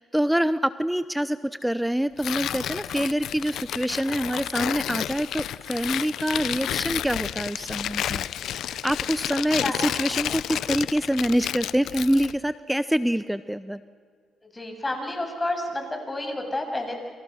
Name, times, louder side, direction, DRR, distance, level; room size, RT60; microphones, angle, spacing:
voice 1, 0.0-8.2 8.7-13.8, equal, 5° right, 14 dB, 0.8 m, -26 dB
Tearing, 2.2-12.4, left 11 dB, 75° left, 0.6 m, -31 dB
voice 2, 14.5-17.0, left 1 dB, 20° left, 4 dB, 7.3 m, -30 dB
29.5 x 27.5 x 6.4 m, 2.1 s
supercardioid pair, 65°, 0 cm